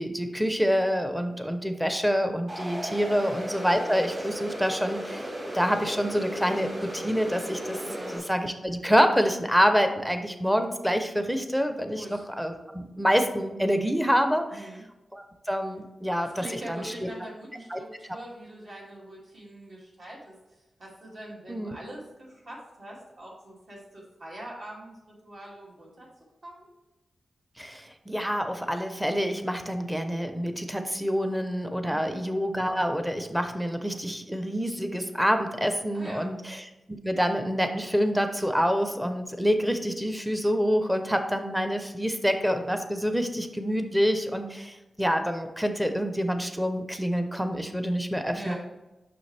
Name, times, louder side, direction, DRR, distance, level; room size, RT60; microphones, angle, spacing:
voice 1, 0.0-7.8 8.1-14.7 15.1-16.8 17.7-17.8 21.5-21.8 27.6-36.6 37.0-48.5, equal, 5° right, 7 dB, 0.6 m, -27 dB
sound 1, 2.5-8.2, equal, 35° right, 2.4 m, -35 dB
voice 2, 11.9-12.2 14.5-14.8 16.2-26.1 26.4-26.7 31.9-32.2 35.9-36.3 48.3-48.6, right 1 dB, 60° right, -5 dB, 2.5 m, -43 dB
6.9 x 5.8 x 3.3 m, 1.0 s
wide cardioid pair, 125°, 0 cm